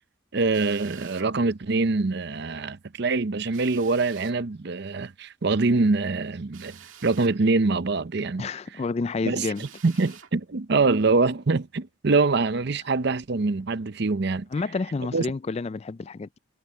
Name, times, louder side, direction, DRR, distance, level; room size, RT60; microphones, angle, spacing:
voice 1, 0.3-8.5 9.3-9.5 9.8-14.5 15.1-15.2, right 3 dB, 55° right, 0.7 m, -24 dB
Drill, 0.5-1.3 3.5-4.4 6.5-7.4 9.5-10.3, right 10 dB, 85° right, 2.1 m, -48 dB
voice 2, 8.4-9.6 14.5-16.4, left 4 dB, 30° left, 0.3 m, -29 dB
head